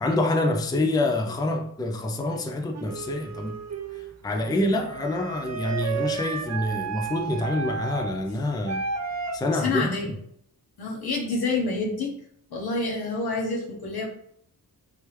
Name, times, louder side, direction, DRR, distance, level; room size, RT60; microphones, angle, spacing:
voice 1, 0.0-3.6 4.2-8.8 9.3-9.9, left 2 dB, 10° left, 0.4 m, -26 dB
sound 1, 2.7-9.4, right 5 dB, 45° right, 0.5 m, -33 dB
voice 2, 9.5-10.1 10.8-12.2 12.5-14.1, left 3 dB, 70° left, 1.2 m, -27 dB
3.3 x 3.0 x 3.2 m
cardioid pair, 70°, 39 cm